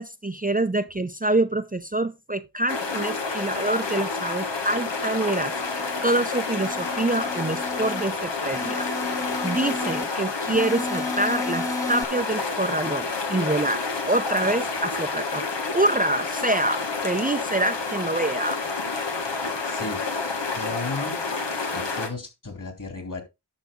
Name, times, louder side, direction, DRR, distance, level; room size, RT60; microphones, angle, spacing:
voice 1, 0.0-5.5 6.0-8.9 9.4-15.5 15.7-18.6, right 2 dB, 20° right, 0.7 m, -26 dB
sound 1, 2.7-22.1, left 4 dB, 90° left, 1.8 m, -29 dB
sound 2, 5.0-6.0 6.5-8.1 8.5-10.0 10.5-12.0, left 3 dB, 10° left, 0.4 m, -33 dB
voice 2, 19.6-20.1 20.5-21.2 21.7-23.2, left 2 dB, 45° left, 3.1 m, -34 dB
10.5 x 6.0 x 3.7 m
wide cardioid pair, 50°, 42 cm